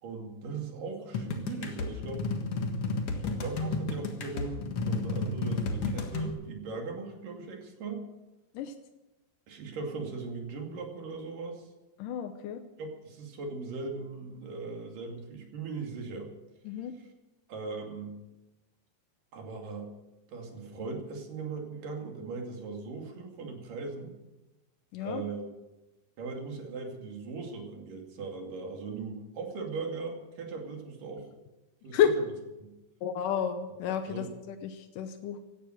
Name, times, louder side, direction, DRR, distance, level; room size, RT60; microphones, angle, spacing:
voice 1, 0.0-2.2 3.2-8.1 9.5-11.7 12.8-16.3 17.5-18.2 19.3-19.9 20.3-24.1 25.0-25.5 26.2-31.3 31.8-32.0 32.6-32.7 34.1-34.3, right 4 dB, 70° right, 2 dB, 4.1 m, -39 dB
sound 1, 1.1-6.3, left 3 dB, 50° left, 2.2 m, -32 dB
voice 2, 12.0-12.6 16.6-16.9 24.9-25.2 31.9-32.1 33.0-35.4, left 9 dB, 75° left, 7 dB, 2.3 m, -30 dB
17.0 x 12.5 x 6.5 m, 1.0 s
omnidirectional pair, 4.1 m